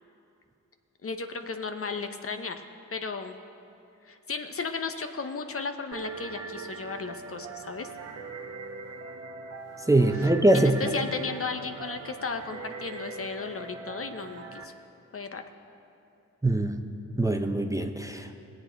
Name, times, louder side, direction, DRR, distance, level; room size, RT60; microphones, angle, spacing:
voice 1, 1.0-2.6 2.9-3.4 4.0-7.9 10.2-14.7 15.1-15.4, left 4 dB, 40° left, 7 dB, 0.8 m, -35 dB
sound 1, 5.9-14.7, right 3 dB, 50° right, 1.0 m, -41 dB
voice 2, 9.9-10.9 16.4-16.8 17.2-18.3, right 1 dB, 10° right, 5 dB, 0.7 m, -23 dB
18.0 x 8.1 x 3.9 m, 2.7 s
cardioid pair, 60°, 34 cm